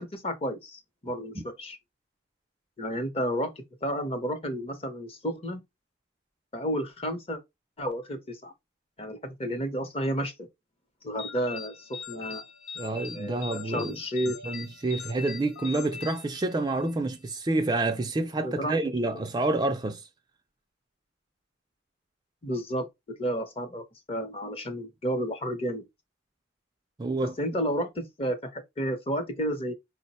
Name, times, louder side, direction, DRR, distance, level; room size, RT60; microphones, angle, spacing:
voice 1, 0.0-1.8 2.8-3.5 3.8-5.6 6.5-7.4 7.8-8.5 9.0-10.5 11.0-12.4 13.1-14.4 18.4-18.8 22.4-22.9 23.2-25.9 27.4-29.7, equal, 30° left, 0.7 m, -31 dB
sound 1, 11.2-16.9, left 6 dB, 85° left, 0.7 m, -42 dB
voice 2, 12.8-14.0 14.4-20.0 27.0-27.3, right 2 dB, 20° right, 0.3 m, -28 dB
4.7 x 2.1 x 4.1 m
head